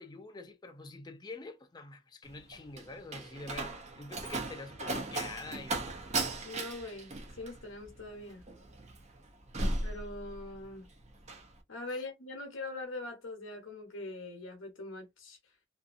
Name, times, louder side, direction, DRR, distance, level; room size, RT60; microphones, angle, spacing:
voice 1, 0.0-5.9 11.9-12.0, left 3 dB, 20° left, 0.3 m, -46 dB
Slam, 2.2-10.7 11.0-11.5, right 2 dB, 35° right, 0.6 m, -37 dB
voice 2, 6.4-8.4 9.8-10.9 11.7-15.4, left 2 dB, 70° left, 0.8 m, -42 dB
2.6 x 2.5 x 2.4 m
head